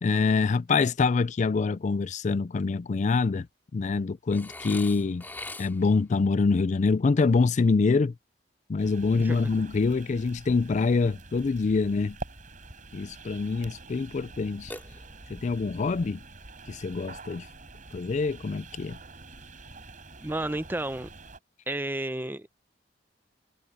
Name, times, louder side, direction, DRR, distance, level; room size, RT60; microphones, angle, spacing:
voice 1, 0.0-3.5 3.7-5.2 5.6-8.1 8.7-12.2 12.9-14.7 15.3-16.2 16.7-17.5 17.9-19.0, left 4 dB, 45° left, 0.4 m, -25 dB
Burping eructation, 4.3-6.0 14.7-15.5, left 2 dB, 10° left, 2.3 m, -42 dB
sound 1, 8.8-21.4, right 3 dB, 50° right, 5.1 m, -46 dB
voice 2, 9.2-9.5 20.2-21.1 21.7-22.5, right 1 dB, 10° right, 0.6 m, -32 dB
head